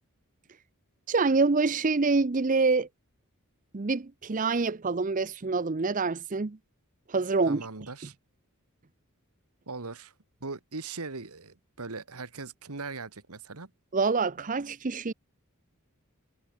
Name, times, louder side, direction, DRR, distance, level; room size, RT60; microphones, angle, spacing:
voice 1, 1.1-2.9 3.7-6.6 7.1-7.6 13.9-15.1, right 4 dB, 35° right, 0.6 m, -26 dB
voice 2, 7.5-8.1 9.7-10.1 10.4-13.7, right 3 dB, 85° right, 1.7 m, -39 dB
head